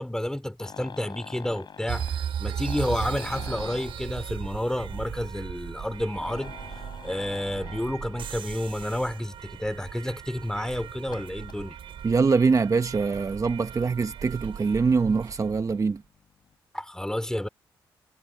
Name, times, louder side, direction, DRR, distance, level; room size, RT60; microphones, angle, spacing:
voice 1, 0.0-11.8 16.7-17.5, left 1 dB, 5° left, 3.6 m, -30 dB
sound 1, 0.6-8.4 8.7-9.0 9.5-9.6 9.9-10.0 11.0-11.6 12.9-13.0 13.5-13.9 14.6-14.7 15.0-15.1 15.3-15.4, left 6 dB, 55° left, 3.2 m, -45 dB
sound 2, 1.9-15.8, right 9 dB, 70° right, 5.2 m, -37 dB
voice 2, 12.0-16.0, right 4 dB, 35° right, 0.9 m, -23 dB
cardioid pair, 65°, 9 cm